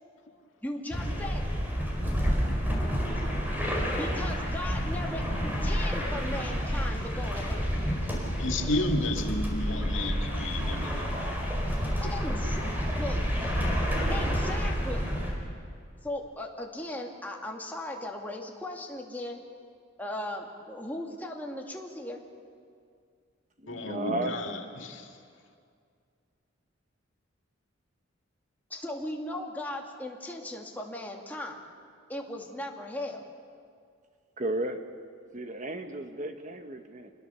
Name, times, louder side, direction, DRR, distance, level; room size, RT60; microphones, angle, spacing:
voice 1, 0.6-1.5 4.0-7.7 12.0-13.2 14.1-15.0 16.0-19.4 20.0-22.2 28.7-31.6 32.1-33.3, left 1 dB, 10° left, 0 dB, 2.2 m, -37 dB
sound 1, 0.9-15.3, equal, 10° right, 4.5 m, -29 dB
voice 2, 8.4-11.3 11.9-12.1 23.7-25.2, left 2 dB, 70° left, 3 dB, 2.2 m, -33 dB
voice 3, 23.6-24.3 34.4-34.8 35.3-37.1, right 1 dB, 35° right, 7 dB, 1.3 m, -34 dB
27.0 x 21.5 x 6.9 m, 2.2 s
head